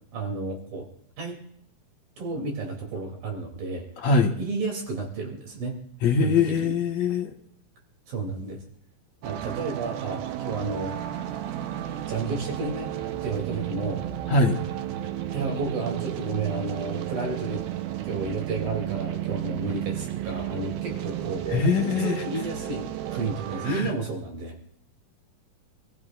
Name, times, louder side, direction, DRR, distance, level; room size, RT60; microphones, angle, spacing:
voice 1, 0.1-0.9 1.2-1.4 2.2-3.9 4.4-5.8 6.2-6.8 8.1-8.6 9.2-11.0 12.1-12.9 13.2-14.1 15.3-17.6 18.0-21.7 22.0-24.6, right 3 dB, 70° right, 0 dB, 4.9 m, -32 dB
voice 2, 4.0-4.3 6.0-7.3 14.3-14.6 21.5-22.2 23.6-23.9, left 4 dB, 60° left, 2 dB, 2.5 m, -22 dB
sound 1, 9.2-23.8, right 11 dB, 90° right, 2.9 m, -33 dB
27.5 x 15.0 x 2.6 m, 0.68 s
omnidirectional pair, 4.2 m